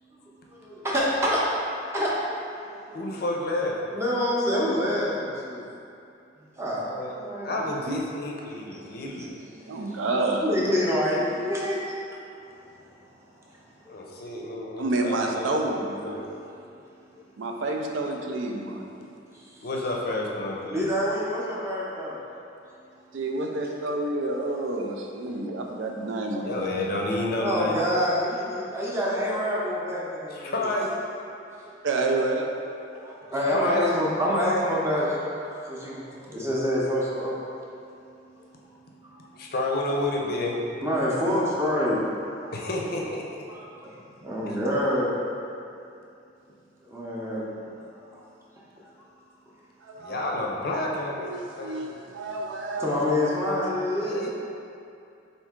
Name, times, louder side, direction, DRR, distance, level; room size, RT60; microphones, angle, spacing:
voice 1, 0.5-1.4 1.9-2.1 2.4-2.9 3.9-5.6 6.6-6.9 7.2-7.7 8.7-8.9 9.2-10.1 10.4-11.9 12.6-12.7 13.8-14.0 16.2-16.3 20.7-22.2 27.4-30.7 31.6-31.7 33.0-37.3 40.8-42.0 42.4-42.5 43.5-45.2 46.8-47.4 47.9-48.2 49.0-49.1 52.8-54.3, left 1 dB, 15° right, -6 dB, 0.6 m, -27 dB
voice 2, 2.9-3.7 6.9-7.1 7.4-9.4 13.9-16.3 19.6-20.9 26.4-27.8 28.5-28.7 30.3-30.9 33.5-34.0 37.8-40.8 42.5-43.3 44.5-44.6 50.0-51.9 54.0-54.3, left 2 dB, 55° left, -1 dB, 0.5 m, -31 dB
voice 3, 9.7-10.5 14.8-16.2 17.4-18.8 23.1-26.8 31.8-32.5 49.8-50.2 50.7-50.9 51.2-52.9 53.6-53.7, right 2 dB, 80° right, 1 dB, 0.4 m, -29 dB
4.4 x 2.6 x 3.6 m, 2.6 s
head